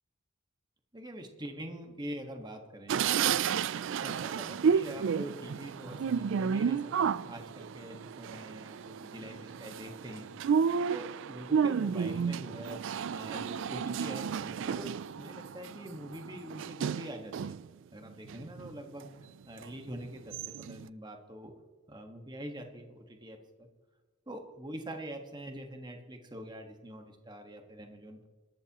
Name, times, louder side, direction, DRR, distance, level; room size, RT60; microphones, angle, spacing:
voice 1, 0.9-3.3 4.0-10.3 10.9-12.8 13.1-17.5 17.9-19.1 19.4-21.5 21.9-23.7 24.3-28.3, right 1 dB, 20° right, 4 dB, 1.5 m, -44 dB
sound 1, 2.9-17.7 18.1-19.1 19.6-19.7 20.0-20.9, right 7 dB, 60° right, 0.3 m, -32 dB
25.0 x 13.0 x 3.0 m, 1.3 s
head